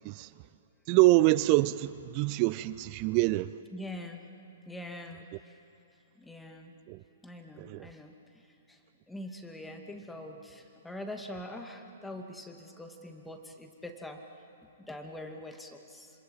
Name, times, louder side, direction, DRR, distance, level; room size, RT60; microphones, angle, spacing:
voice 1, 0.9-3.5 6.9-7.0 7.6-7.9, right 18 dB, 35° right, 17 dB, 0.5 m, -25 dB
voice 2, 3.7-4.2 4.7-5.3 6.2-6.7 7.2-8.8 9.1-14.2 14.8-16.1, left 1 dB, 5° left, 3 dB, 2.5 m, -43 dB
26.5 x 26.5 x 7.6 m, 2.6 s
figure-of-eight pair, 115°, 0 cm